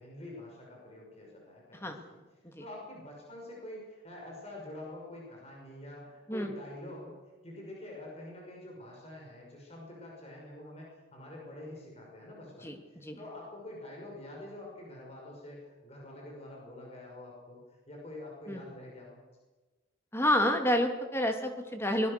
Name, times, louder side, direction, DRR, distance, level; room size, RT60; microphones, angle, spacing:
voice 1, 0.0-2.2 2.6-7.2 7.4-12.8 13.2-19.2, left 1 dB, 30° left, -2 dB, 5.9 m, -46 dB
voice 2, 20.1-22.1, left 1 dB, 10° left, 5 dB, 2.4 m, -28 dB
23.5 x 21.0 x 6.7 m, 1.2 s
head